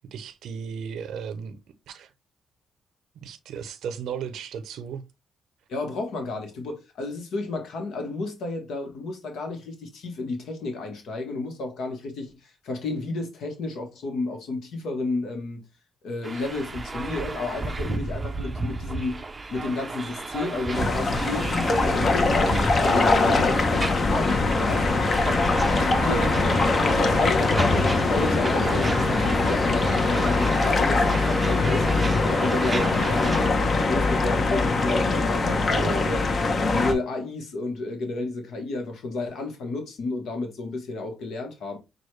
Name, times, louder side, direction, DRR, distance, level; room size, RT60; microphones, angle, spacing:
voice 1, 0.1-1.6 1.9-2.1 3.2-5.0 23.3-23.5 26.1-26.3 35.7-36.1, right 7 dB, 85° right, 0.5 m, -35 dB
voice 2, 5.7-15.6 16.0-19.2 19.5-23.8 24.1-24.9 25.8-26.5 27.0-31.9 32.2-36.2 36.7-41.8, left 3 dB, 80° left, 1.0 m, -32 dB
sound 1, 16.2-33.5, right 3 dB, 25° right, 0.4 m, -33 dB
sound 2, 20.7-36.9, left 3 dB, 45° left, 0.8 m, -22 dB
6.2 x 2.3 x 3.1 m
cardioid pair, 100°, 0 cm